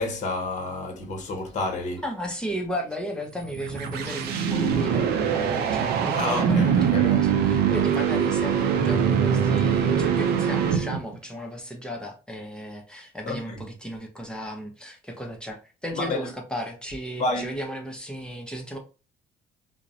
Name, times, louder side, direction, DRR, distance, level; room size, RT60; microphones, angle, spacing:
voice 1, 0.0-2.0 6.2-7.2 13.2-13.6 15.9-16.3 17.2-17.5, left 2 dB, 45° left, 0.8 m, -30 dB
voice 2, 2.0-18.8, equal, 5° left, 0.6 m, -35 dB
sound 1, 3.4-11.2, right 7 dB, 75° right, 0.5 m, -23 dB
2.4 x 2.0 x 2.6 m
cardioid pair, 110°, 17 cm